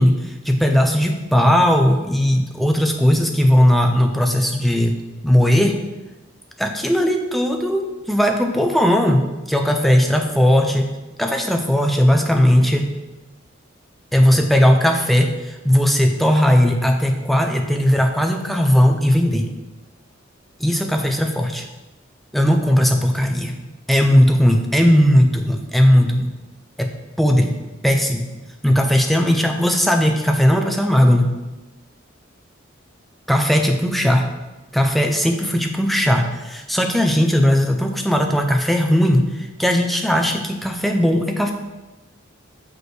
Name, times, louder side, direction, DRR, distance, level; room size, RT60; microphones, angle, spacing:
voice 1, 0.0-5.0 5.2-5.8 6.6-10.9 11.2-12.9 14.1-19.5 20.6-21.6 22.3-23.5 23.9-26.3 26.8-26.9 27.2-27.5 27.8-28.3 28.6-31.3 33.3-34.3 34.7-41.5, equal, ahead, 3 dB, 0.5 m, -17 dB
6.4 x 5.1 x 4.7 m, 1.1 s
head